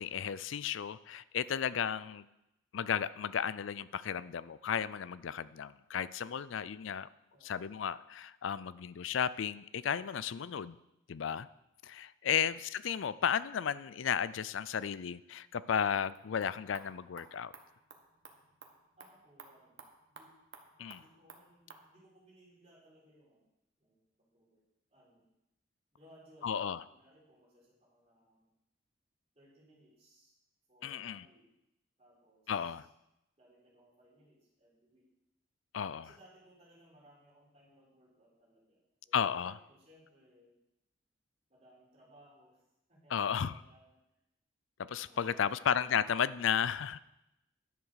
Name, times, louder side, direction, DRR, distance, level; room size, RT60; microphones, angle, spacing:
voice 1, 0.0-2.2 2.7-7.1 7.4-10.8 11.1-11.5 11.8-17.5 20.8-21.0 26.4-26.8 30.8-31.2 32.5-32.9 35.7-36.0 39.1-39.6 43.1-43.5 44.8-47.0, left 8 dB, 80° left, 17 dB, 0.4 m, -34 dB
sound 1, 16.1-21.9, right 4 dB, 60° right, 1.3 m, -56 dB
voice 2, 19.0-19.8 20.1-20.3 21.0-23.5 23.8-24.6 24.9-25.3 25.9-28.5 29.3-30.3 30.7-31.4 32.0-32.9 33.4-35.0 36.0-40.5 41.5-42.6 42.9-44.2 45.0-46.1, right 1 dB, 35° right, -5 dB, 4.4 m, -63 dB
11.0 x 7.2 x 6.4 m, 0.89 s
head